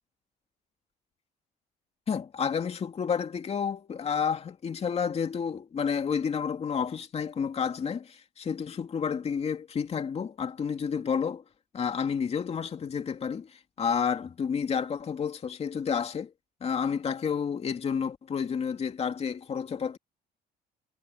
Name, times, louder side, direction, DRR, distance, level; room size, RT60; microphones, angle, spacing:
voice 1, 2.1-11.4 11.7-16.3 16.6-20.0, left 6 dB, 40° left, 2.6 m, -30 dB
cardioid pair, 110°, 17 cm